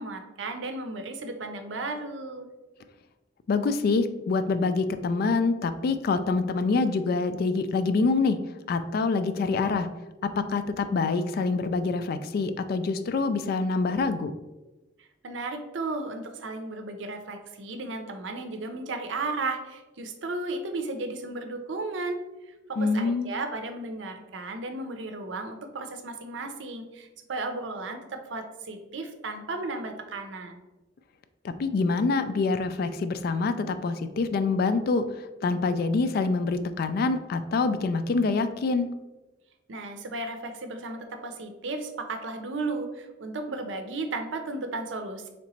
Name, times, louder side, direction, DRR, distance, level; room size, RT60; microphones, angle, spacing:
voice 1, 0.0-2.5 15.0-22.2 22.7-30.6 39.7-45.3, right 3 dB, 85° right, 6 dB, 0.5 m, -34 dB
voice 2, 3.5-8.4 8.7-9.9 10.2-14.3 22.8-23.3 31.4-35.0 35.4-38.9, left 4 dB, 55° left, 10 dB, 0.3 m, -26 dB
3.2 x 2.9 x 4.0 m, 1.1 s
head